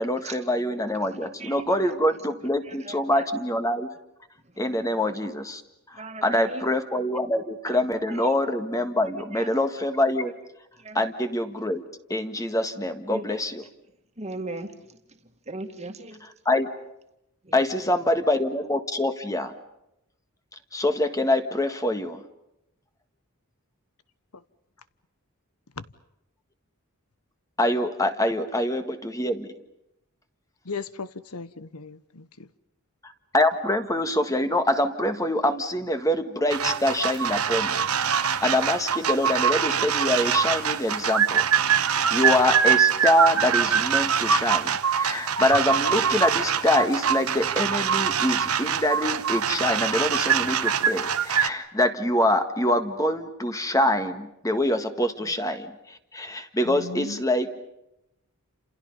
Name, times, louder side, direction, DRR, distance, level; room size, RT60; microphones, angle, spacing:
voice 1, 0.0-3.9 4.6-5.6 5.9-10.3 11.0-11.8 12.1-13.6 16.5-16.7 17.5-19.5 20.7-22.2 27.6-29.5 33.0-57.6, left 1 dB, 15° left, 1.7 m, -25 dB
voice 2, 1.2-2.0 2.6-3.3 4.8-5.0 5.9-6.7 7.7-7.8 8.1-8.3 9.3-9.5 10.8-11.0 13.1-13.2 14.2-15.0 15.5-16.3 17.4-18.1, right 2 dB, 30° right, 2.1 m, -39 dB
voice 3, 30.6-32.5 55.2-55.3 56.6-57.2, left 4 dB, 90° left, 1.2 m, -37 dB
sound 1, 36.5-51.5, right 7 dB, 75° right, 1.2 m, -24 dB
30.0 x 28.0 x 5.5 m
head